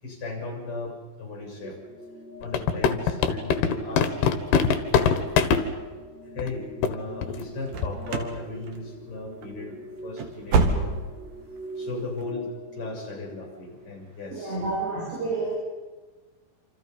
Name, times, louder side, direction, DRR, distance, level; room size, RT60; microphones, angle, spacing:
voice 1, 0.0-1.8 2.4-4.4 4.9-5.3 6.3-9.8 10.0-11.0 11.8-14.6, left 3 dB, 30° left, 1 dB, 8.1 m, -36 dB
sound 1, 1.6-13.5, equal, 5° right, 5.2 m, -43 dB
sound 2, 2.4-5.6 6.4-6.5 6.8-7.0 7.2-7.4 7.8-8.1, left 7 dB, 75° left, 3.4 m, -21 dB
sound 3, 7.7-8.4 8.7-9.1 9.4-9.6 10.0-11.3 11.6-11.7 12.2-12.3, right 4 dB, 55° right, 3.3 m, -26 dB
voice 2, 14.3-15.5, right 3 dB, 90° right, -7 dB, 9.8 m, -29 dB
28.0 x 27.5 x 5.5 m, 1.3 s
omnidirectional pair, 4.8 m